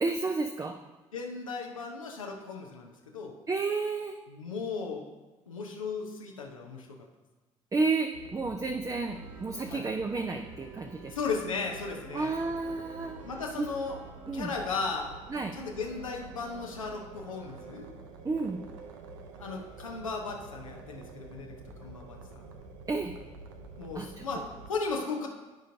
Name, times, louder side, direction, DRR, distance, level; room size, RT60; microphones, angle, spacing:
voice 1, 0.0-0.8 3.5-4.2 7.7-11.1 12.1-13.2 13.6-13.7 14.3-14.5 15.3-15.5 18.2-18.6 22.9-23.1 23.9-24.2, right 3 dB, 20° right, 4 dB, 0.6 m, -31 dB
voice 2, 1.1-3.4 4.3-5.0 5.5-6.9 9.7-9.8 11.1-12.3 13.2-14.0 14.3-15.1 15.5-17.9 19.4-21.5 21.8-22.4 23.8-25.3, left 4 dB, 85° left, 0 dB, 0.8 m, -36 dB
sound 1, 8.1-24.7, right 3 dB, 75° right, 0.7 m, -48 dB
sound 2, 9.1-18.0, right 2 dB, 50° right, 1.6 m, -55 dB
14.0 x 5.1 x 2.7 m, 1.2 s
figure-of-eight pair, 50°, 17 cm